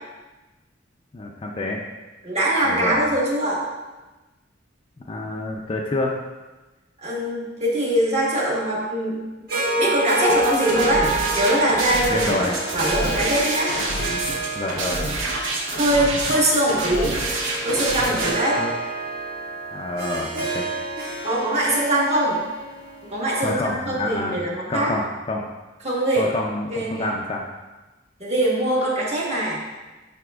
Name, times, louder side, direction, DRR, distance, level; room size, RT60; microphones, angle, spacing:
voice 1, 1.1-1.8 2.6-3.0 5.1-6.1 12.1-12.6 14.6-15.0 18.6-18.7 19.7-20.7 23.4-24.4 24.7-25.5 26.2-27.4, left 2 dB, 30° left, 0 dB, 0.4 m, -27 dB
voice 2, 2.2-3.6 7.0-9.2 9.8-12.5 12.7-13.7 15.7-17.2 17.6-18.6 21.2-22.4 23.0-24.9 25.8-26.3 26.7-27.1 28.2-29.6, right 1 dB, 35° right, -4 dB, 1.5 m, -22 dB
Harp, 9.5-23.9, right 2 dB, 50° right, 1.5 m, -29 dB
sound 1, 10.3-18.3, right 2 dB, 80° right, 1.0 m, -27 dB
11.0 x 4.2 x 2.3 m, 1.2 s
head